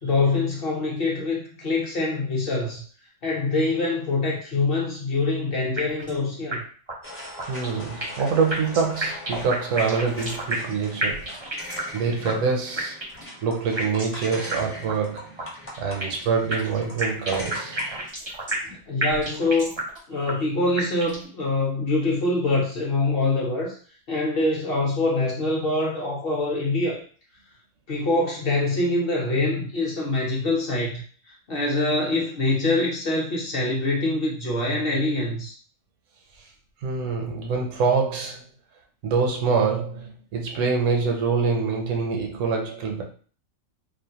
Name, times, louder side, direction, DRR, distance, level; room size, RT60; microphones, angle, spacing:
voice 1, 0.0-2.8 3.2-6.6 18.6-19.8 20.1-23.8 24.1-27.0 27.9-35.6, left 2 dB, 55° left, -3 dB, 0.9 m, -24 dB
sound 1, 5.8-6.2 6.5-6.6 6.9-7.0 7.4-8.2 8.5-10.7 11.0-12.0 12.3-12.4 12.8-13.3 13.8-14.2 14.5-14.6 14.9-15.0 15.4-16.2 16.5-18.7 19.0-20.0 20.3-20.4 20.8-21.3, right 2 dB, 35° right, 0.5 m, -30 dB
sound 2, 7.0-18.1, left 1 dB, 15° left, 0.5 m, -40 dB
voice 2, 7.5-11.3 11.9-13.0 13.4-15.4 15.8-18.1 36.8-38.4 39.0-43.0, right 5 dB, 75° right, 2 dB, 1.0 m, -25 dB
2.5 x 2.1 x 2.8 m, 0.42 s
omnidirectional pair, 1.3 m